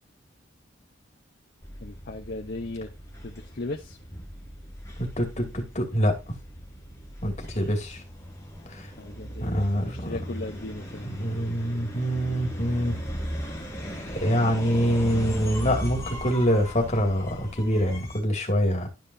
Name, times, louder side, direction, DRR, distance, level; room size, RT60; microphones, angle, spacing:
sound 1, 1.6-18.2, equal, 15° left, 2.2 m, -37 dB
voice 1, 1.8-2.9 3.2-4.0 7.7-7.8 9.0-11.1, left 2 dB, 50° left, 0.9 m, -37 dB
voice 2, 5.0-6.4 7.2-8.0 8.7-8.9 9.4-10.2 11.0-13.0 14.1-18.9, equal, 35° left, 2.4 m, -25 dB
12.0 x 5.4 x 2.7 m
head